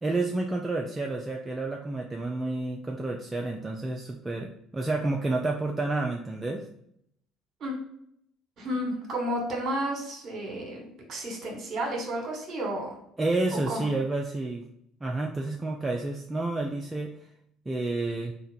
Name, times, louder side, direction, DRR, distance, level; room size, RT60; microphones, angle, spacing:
voice 1, 0.0-6.6 13.2-14.6 15.0-17.1 17.7-18.3, right 2 dB, 20° right, 1 dB, 0.5 m, -30 dB
voice 2, 8.6-13.0 13.7-13.9, right 1 dB, 45° right, 1 dB, 1.3 m, -32 dB
3.8 x 2.4 x 4.2 m, 0.72 s
figure-of-eight pair, 55°, 0 cm